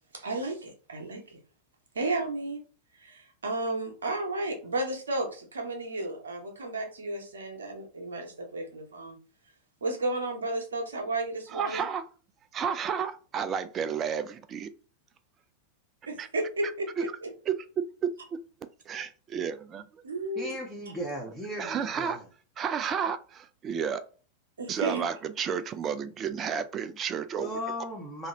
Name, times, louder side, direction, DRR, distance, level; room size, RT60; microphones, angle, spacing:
voice 1, 0.1-1.4 1.9-2.6 2.9-9.2 9.8-11.9 16.1-17.3 20.0-20.6 24.6-25.1, right 2 dB, 70° right, 3 dB, 0.9 m, -33 dB
voice 2, 11.5-12.0 12.5-14.7 16.2-16.3 17.0-17.1 17.5-17.6 18.0-18.4 18.9-20.0 21.6-22.2 22.6-24.0 24.7-27.5, right 7 dB, 25° right, 11 dB, 0.3 m, -31 dB
voice 3, 20.4-22.2 27.4-28.3, equal, 5° left, -4 dB, 0.8 m, -36 dB
2.9 x 2.6 x 3.7 m, 0.38 s
figure-of-eight pair, 90°, 0 cm